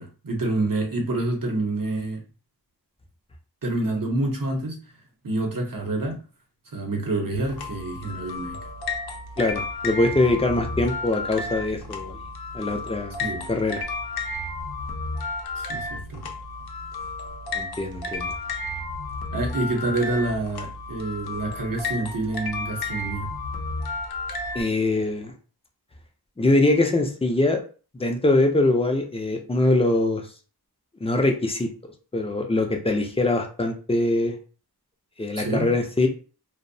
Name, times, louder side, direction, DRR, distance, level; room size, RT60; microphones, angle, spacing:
voice 1, 0.0-2.2 3.6-4.8 5.2-6.2 6.7-8.6 13.2-13.5 15.6-16.3 19.3-23.3 35.4-35.7, right 2 dB, 55° right, 2 dB, 0.8 m, -27 dB
sound 1, 7.3-24.6, left 3 dB, 65° left, 0.6 m, -32 dB
voice 2, 9.4-12.2 12.5-13.1 13.5-13.8 17.5-18.3 24.5-25.3 26.4-27.6 28.0-30.2 31.0-31.7 32.1-34.4 35.2-36.1, left 2 dB, 15° left, 4 dB, 0.4 m, -23 dB
2.6 x 2.0 x 2.6 m, 0.37 s
wide cardioid pair, 80°, 40 cm